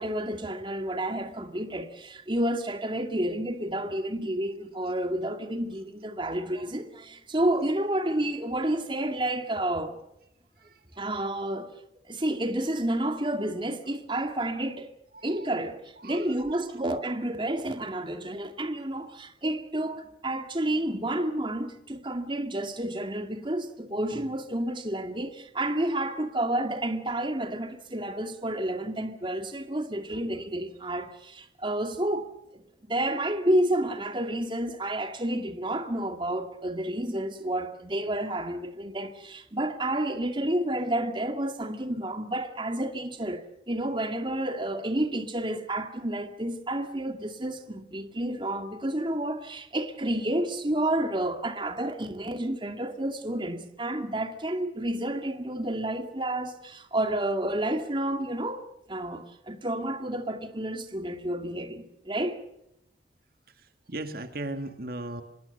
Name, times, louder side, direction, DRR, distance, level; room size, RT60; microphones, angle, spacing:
voice 1, 0.0-10.0 11.0-11.7 12.1-14.9 15.2-32.6 32.9-62.4, right 1 dB, 30° right, 2.3 m, -30 dB
voice 2, 10.6-11.0 15.1-15.5 16.0-16.4 63.5-65.2, right 2 dB, 55° right, 1.8 m, -38 dB
26.0 x 21.5 x 6.7 m
head